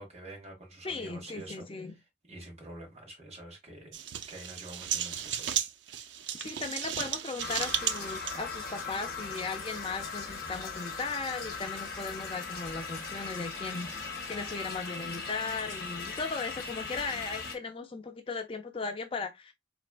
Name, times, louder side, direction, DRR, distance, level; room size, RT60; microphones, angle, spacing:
voice 1, 0.0-4.0 4.3-5.7, right 1 dB, 35° right, 1.7 m, -47 dB
voice 2, 0.8-1.9 6.4-13.9 14.3-19.5, left 4 dB, 30° left, 0.4 m, -37 dB
sound 1, 3.9-8.3, right 9 dB, 75° right, 0.5 m, -34 dB
sound 2, 7.4-17.6, left 4 dB, 50° left, 1.1 m, -39 dB
4.2 x 3.3 x 2.4 m
head